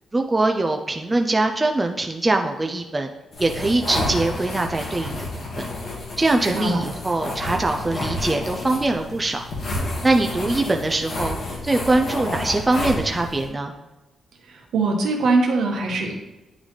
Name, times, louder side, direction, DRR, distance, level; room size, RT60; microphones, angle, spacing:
voice 1, 0.1-3.1 3.4-5.2 6.2-9.4 10.0-11.4 11.6-13.7, right 2 dB, 15° right, 4 dB, 0.4 m, -22 dB
sound 1, 3.3-13.5, left 2 dB, 45° left, 1.6 m, -30 dB
voice 2, 6.4-6.8 14.4-16.1, right 3 dB, 75° right, 2 dB, 1.1 m, -22 dB
9.7 x 3.9 x 3.2 m, 1.1 s
wide cardioid pair, 145°, 0 cm